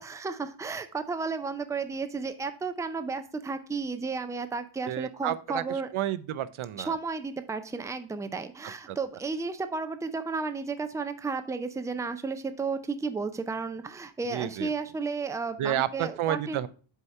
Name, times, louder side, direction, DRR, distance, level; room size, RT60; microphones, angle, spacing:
voice 1, 0.0-5.9 6.9-16.6, right 4 dB, 5° right, 9 dB, 0.4 m, -33 dB
voice 2, 4.9-7.0 8.9-9.0 14.3-14.7 15.6-16.7, right 11 dB, 80° right, 15 dB, 0.5 m, -31 dB
8.1 x 2.8 x 4.4 m, 0.38 s
wide cardioid pair, 105°, 48 cm